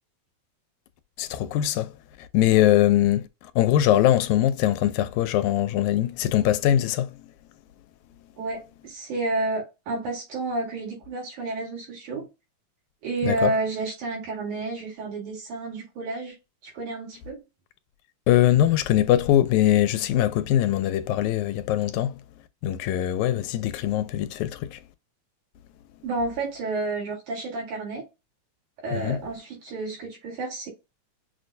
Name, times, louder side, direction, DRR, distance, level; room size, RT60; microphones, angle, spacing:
voice 1, 1.2-7.3 13.2-13.5 18.3-22.2 22.6-24.8 28.9-29.2, left 12 dB, 85° left, 1.9 m, -22 dB
voice 2, 8.4-12.3 13.0-16.3 16.6-17.4 26.0-28.0 28.8-30.7, right 2 dB, 85° right, 3.5 m, -30 dB
6.2 x 2.2 x 2.6 m
omnidirectional pair, 3.3 m